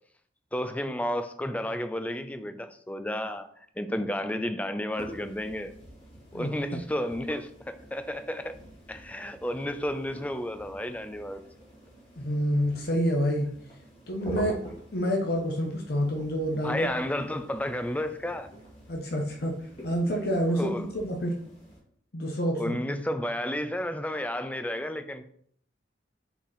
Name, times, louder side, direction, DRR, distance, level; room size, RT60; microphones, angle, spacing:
voice 1, 0.5-3.5 3.8-5.7 6.3-8.6 8.9-11.4 16.6-18.5 20.6-20.9 22.5-25.3, left 1 dB, 10° left, 0.4 m, -32 dB
sound 1, 4.9-21.8, equal, 30° left, 2.2 m, -46 dB
voice 2, 12.2-13.5 14.1-14.6 14.9-16.9 18.9-19.6 19.8-21.3 22.1-22.8, equal, 55° left, 0.9 m, -28 dB
5.8 x 4.2 x 4.2 m
head